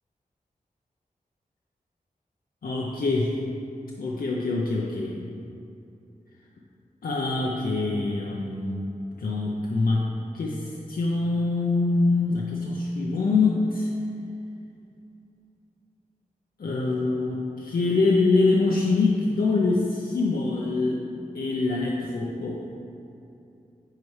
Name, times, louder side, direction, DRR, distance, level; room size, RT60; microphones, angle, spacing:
voice 1, 2.6-3.4 4.0-5.3 7.0-8.9 9.2-10.1 10.3-13.9 16.6-21.1 21.3-22.6, left 3 dB, 85° left, -3 dB, 0.6 m, -24 dB
9.4 x 4.1 x 3.2 m, 2.7 s
wide cardioid pair, 100°, 15 cm